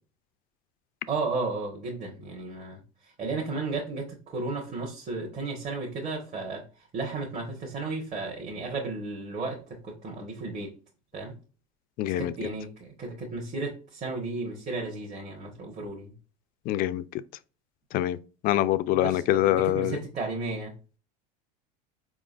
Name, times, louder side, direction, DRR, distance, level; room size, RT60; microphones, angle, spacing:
voice 1, 1.1-10.7 11.1-11.3 12.2-16.1 18.9-20.7, right 3 dB, 35° right, 1.3 m, -34 dB
voice 2, 12.0-12.3 16.7-17.0 17.9-18.2 18.4-20.0, left 14 dB, 45° left, 0.4 m, -24 dB
4.8 x 3.8 x 2.5 m
supercardioid pair, 115°, 20 cm